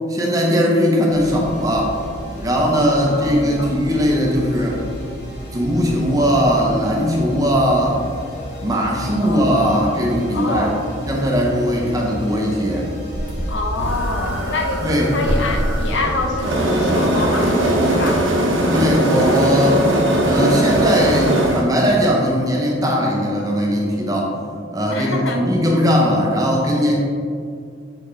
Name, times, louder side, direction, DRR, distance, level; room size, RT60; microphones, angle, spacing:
voice 1, 0.1-2.0 2.4-4.8 5.5-8.0 8.6-10.7 11.1-12.9 14.8-15.1 18.7-19.9 20.2-24.4 24.7-26.9, equal, 20° right, -2 dB, 0.8 m, -19 dB
sound 1, 1.1-17.6, equal, 55° left, 1.4 m, -33 dB
voice 2, 3.0-3.8 9.2-9.6 10.3-10.8 13.5-18.2 24.9-25.5, left 2 dB, 70° left, 3 dB, 0.6 m, -26 dB
sound 2, 13.2-21.7, right 1 dB, 75° right, 0.8 m, -20 dB
6.9 x 4.2 x 3.2 m, 2.2 s
head